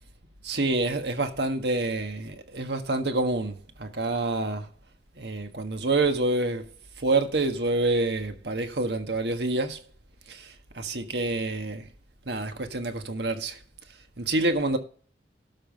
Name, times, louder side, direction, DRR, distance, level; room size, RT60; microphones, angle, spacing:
voice 1, 0.4-4.7 5.2-6.7 7.0-9.8 10.3-11.9 12.2-13.6 14.2-14.8, right 2 dB, 70° right, 1.5 m, -27 dB
12.5 x 5.6 x 5.5 m
head